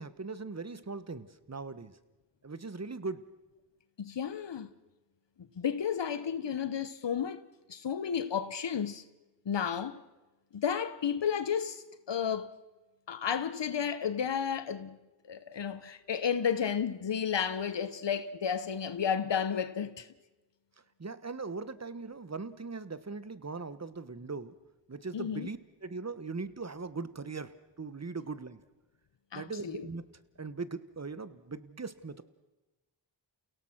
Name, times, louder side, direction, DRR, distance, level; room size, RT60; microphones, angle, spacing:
voice 1, 0.0-2.0 2.4-3.2 21.0-24.5 24.9-28.6 29.3-30.0 30.4-32.2, right 4 dB, 35° right, 1.3 m, -40 dB
voice 2, 4.0-4.7 5.6-7.4 7.7-9.0 9.4-10.0 10.5-12.5 13.1-15.0 15.2-20.1 25.1-25.5 29.3-29.9, left 7 dB, 75° left, 1.0 m, -32 dB
29.0 x 17.5 x 6.0 m
cardioid pair, 40°, 44 cm